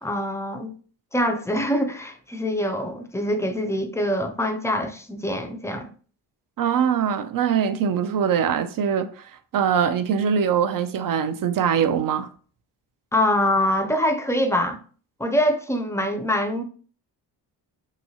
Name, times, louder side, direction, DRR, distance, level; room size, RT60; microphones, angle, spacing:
voice 1, 0.0-0.7 1.1-5.9 13.1-14.8 15.2-16.6, left 1 dB, 5° left, 0.4 m, -24 dB
voice 2, 6.6-12.3, right 7 dB, 50° right, 0.5 m, -23 dB
2.9 x 2.7 x 2.7 m
cardioid pair, 70°, 45 cm